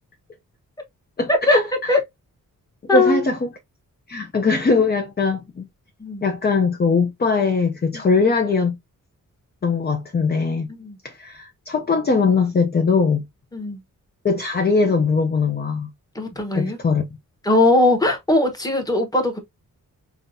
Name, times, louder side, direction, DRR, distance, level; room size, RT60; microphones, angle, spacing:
voice 1, 1.2-2.0 2.9-3.5 4.1-5.7 6.2-8.8 9.6-10.7 11.0-13.2 14.2-15.9 16.5-17.1, left 4 dB, 30° left, 0.5 m, -20 dB
voice 2, 2.9-3.2 6.0-6.3 7.9-8.0 10.8-11.0 13.5-13.8 16.1-16.8 17.4-19.4, left 2 dB, 10° left, 1.0 m, -19 dB
5.6 x 2.3 x 2.6 m
wide cardioid pair, 155°, 34 cm